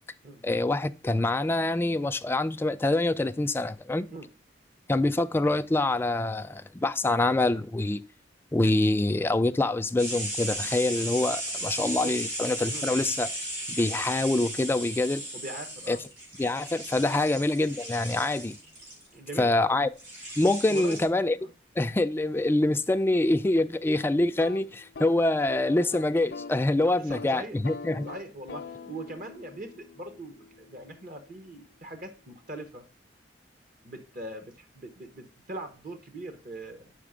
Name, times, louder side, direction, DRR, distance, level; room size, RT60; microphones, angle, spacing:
voice 1, 0.4-4.1 4.9-8.0 8.5-13.3 13.7-15.2 15.9-16.0 16.4-18.6 19.4-19.9 20.4-21.4 21.8-28.1, left 2 dB, 15° left, 0.3 m, -25 dB
sound 1, 10.0-19.1 20.0-21.0, right 1 dB, 85° right, 4.1 m, -36 dB
voice 2, 15.3-16.0 17.1-17.3 19.1-19.8 20.7-21.0 21.4-21.5 26.8-27.6 28.0-32.9 33.8-36.9, right 2 dB, 50° right, 1.0 m, -41 dB
sound 2, 24.3-26.6 26.9-27.3 27.6-31.5, left 4 dB, 60° left, 0.5 m, -44 dB
5.9 x 4.8 x 5.0 m
head